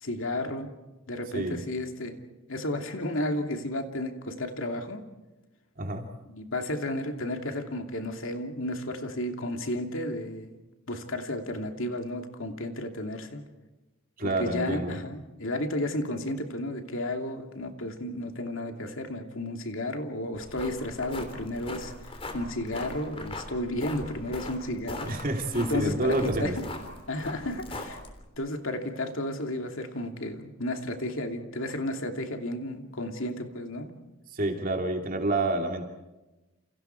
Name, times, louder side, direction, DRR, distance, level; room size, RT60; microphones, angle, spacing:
voice 1, 0.0-0.7 1.1-2.2 2.5-5.0 6.3-10.6 10.9-13.4 14.2-21.9 22.3-25.1 25.7-26.5 27.1-28.0 28.4-33.9, left 1 dB, 60° left, 4 dB, 2.7 m, -33 dB
voice 2, 1.3-1.6 5.8-6.1 14.2-15.0 25.0-26.6 34.3-35.8, right 2 dB, 40° right, 3 dB, 3.0 m, -28 dB
sound 1, 20.3-28.3, left 2 dB, 25° left, 3.3 m, -40 dB
29.5 x 29.0 x 4.7 m, 1.1 s
head